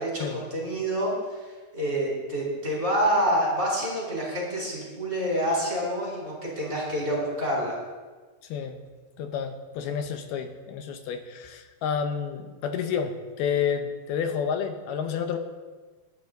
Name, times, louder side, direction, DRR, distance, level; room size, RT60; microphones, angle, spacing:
voice 1, 0.0-7.7, equal, 20° right, -4 dB, 4.3 m, -27 dB
voice 2, 8.5-8.8 9.2-15.4, left 7 dB, 80° left, 6 dB, 3.0 m, -30 dB
21.0 x 11.5 x 3.9 m, 1.3 s
omnidirectional pair, 4.5 m